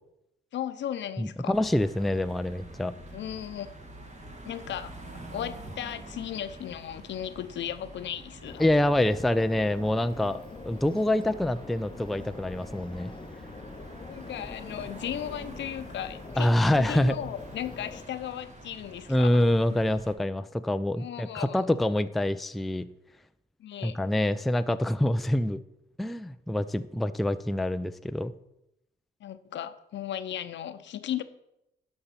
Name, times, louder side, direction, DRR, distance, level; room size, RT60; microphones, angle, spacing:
voice 1, 0.5-1.5 3.1-3.7 4.4-8.6 14.1-16.5 16.7-19.4 19.7-19.8 21.0-21.7 23.6-24.0 29.2-31.2, left 10 dB, 65° left, 12 dB, 0.8 m, -36 dB
voice 2, 1.2-2.9 8.6-13.1 16.4-17.2 19.1-22.9 23.8-25.6 26.0-28.3, left 1 dB, ahead, 11 dB, 0.4 m, -26 dB
sound 1, 1.5-20.1, right 2 dB, 35° right, 2.1 m, -47 dB
sound 2, 8.5-18.0, left 4 dB, 25° left, 0.7 m, -45 dB
11.5 x 5.7 x 5.8 m, 0.87 s
cardioid pair, 90°, 20 cm